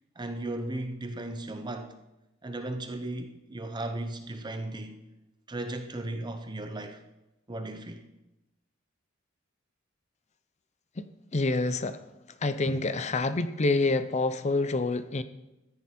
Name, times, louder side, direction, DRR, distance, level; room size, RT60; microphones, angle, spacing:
voice 1, 0.2-2.0 2.4-5.0 5.5-7.0 7.5-8.1, right 2 dB, 20° right, 0.6 m, -36 dB
voice 2, 11.3-12.0 12.4-15.2, left 3 dB, 35° left, 0.6 m, -27 dB
13.5 x 9.7 x 4.3 m
head